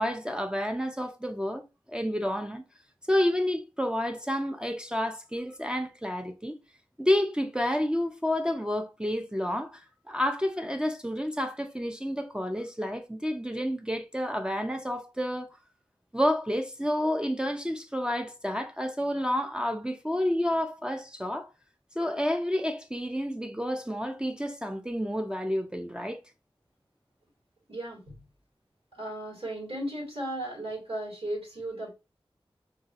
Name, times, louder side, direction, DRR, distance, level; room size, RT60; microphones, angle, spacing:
voice 1, 0.0-2.6 3.1-6.6 7.0-15.5 16.1-21.5 22.0-26.2, equal, 10° right, 0.4 m, -30 dB
voice 2, 27.7-28.2 28.9-31.9, right 1 dB, 90° right, 2.1 m, -35 dB
3.8 x 2.7 x 2.5 m
wide cardioid pair, 40°, 10 cm